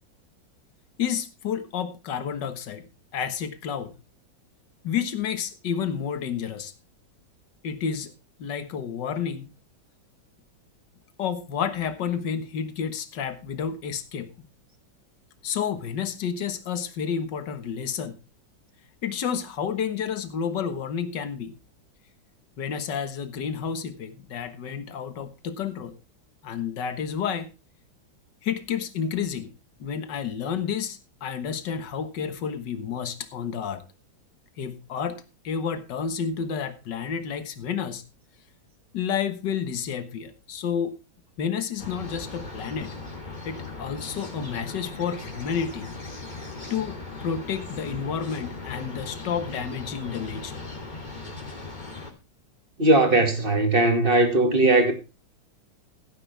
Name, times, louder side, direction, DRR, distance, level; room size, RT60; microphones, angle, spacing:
voice 1, 1.0-2.9 3.1-3.9 4.8-6.7 7.6-8.1 8.4-9.5 11.2-14.3 15.4-18.2 19.0-21.5 22.6-26.0 26.4-27.5 28.4-29.5 29.8-33.8 34.6-38.0 38.9-41.0 41.4-42.9 43.5-45.9 46.7-50.6, left 7 dB, 65° left, 2.0 m, -30 dB
sound 1, 41.8-52.1, left 3 dB, 20° left, 2.8 m, -38 dB
voice 2, 52.8-54.9, right 2 dB, 25° right, 2.4 m, -19 dB
16.0 x 9.8 x 3.4 m
omnidirectional pair, 2.1 m